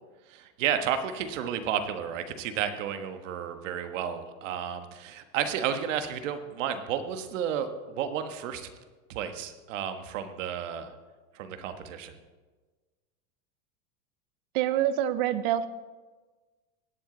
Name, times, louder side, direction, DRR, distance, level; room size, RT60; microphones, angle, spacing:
voice 1, 0.3-8.7 9.1-10.9 11.3-12.2, right 8 dB, 75° right, 8 dB, 1.4 m, -32 dB
voice 2, 14.5-15.7, right 11 dB, 40° right, 13 dB, 0.6 m, -26 dB
17.0 x 11.0 x 3.9 m, 1.3 s
supercardioid pair, 180°, 38 cm